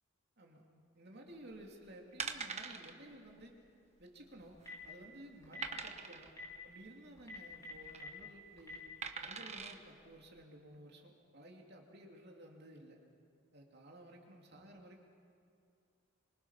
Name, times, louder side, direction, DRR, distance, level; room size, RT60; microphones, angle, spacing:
voice 1, 0.9-3.6 4.0-6.3 6.6-8.9 9.2-13.0 13.5-15.0, right 1 dB, 50° right, 1 dB, 3.0 m, -55 dB
sound 1, 1.5-1.7 2.2-2.9 3.3-3.4 3.7-3.8 4.4-4.8 5.6-6.3 7.6-8.0 9.0-9.8 10.4-10.5, right 5 dB, 30° right, 1.1 m, -43 dB
Telephone, 4.4-4.9 5.4-5.7 6.3-6.4 7.2-8.1 8.6-8.7, left 2 dB, 15° left, 4.5 m, -47 dB
26.5 x 24.5 x 5.9 m, 2.5 s
head